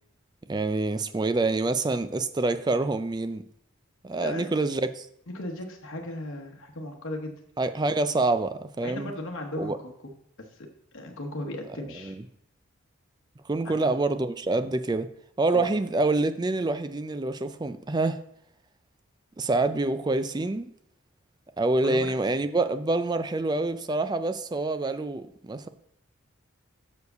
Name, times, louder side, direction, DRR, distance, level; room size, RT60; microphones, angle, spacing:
voice 1, 0.5-3.4 4.0-5.1 7.6-9.1 9.6-9.8 12.0-12.2 13.5-15.1 15.4-18.2 19.4-20.7 21.6-25.7, right 2 dB, 20° right, 11 dB, 0.3 m, -26 dB
voice 2, 5.3-7.3 8.8-9.9 10.4-10.7 10.9-12.2 13.6-13.9 15.5-15.7 21.8-22.1, left 1 dB, 65° left, 1 dB, 1.0 m, -36 dB
6.5 x 4.7 x 6.7 m, 0.74 s
head